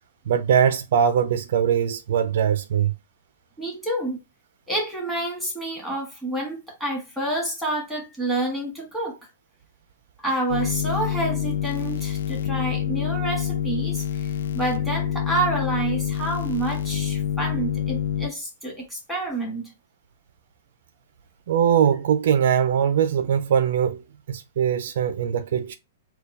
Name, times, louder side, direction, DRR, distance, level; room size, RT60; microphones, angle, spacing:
voice 1, 0.3-2.9 21.5-25.8, right 8 dB, 65° right, 0.4 m, -21 dB
voice 2, 3.6-4.2 4.7-9.2 10.2-14.3 14.5-19.7, right 2 dB, ahead, 1.6 m, -28 dB
sound 1, 10.5-18.3, left 9 dB, 75° left, 0.4 m, -27 dB
4.3 x 2.2 x 3.3 m
hypercardioid pair, 160°, 0 cm